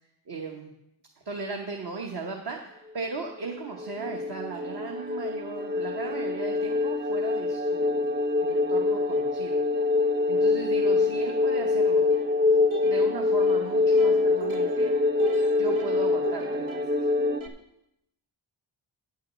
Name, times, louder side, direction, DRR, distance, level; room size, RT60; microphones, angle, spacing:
voice 1, 0.3-0.7 1.2-8.0 8.4-9.6 10.3-12.1 12.8-14.9 15.6-17.1, right 3 dB, 55° right, 1 dB, 1.2 m, -37 dB
sound 1, 3.3-17.4, left 3 dB, 25° right, 0.4 m, -25 dB
Plucked string instrument, 3.6-3.7 4.0-17.5, right 5 dB, 80° right, 1.4 m, -41 dB
9.2 x 6.3 x 7.3 m, 0.85 s
wide cardioid pair, 70°, 48 cm